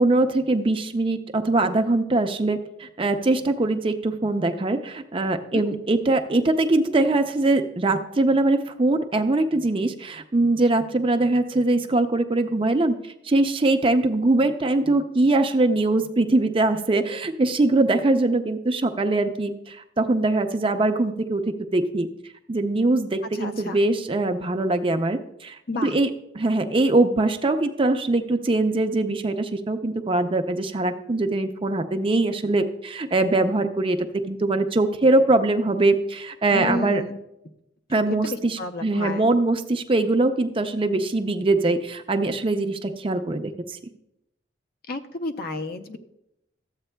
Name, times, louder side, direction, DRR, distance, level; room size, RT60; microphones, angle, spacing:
voice 1, 0.0-12.9 13.3-22.1 22.5-25.6 25.8-37.0 37.9-43.8, right 2 dB, 30° right, 7 dB, 0.5 m, -22 dB
voice 2, 23.3-23.8 25.7-26.0 36.5-37.2 37.9-39.3 44.9-46.0, left 2 dB, 55° left, 7 dB, 0.6 m, -31 dB
13.5 x 8.0 x 2.2 m, 0.83 s
head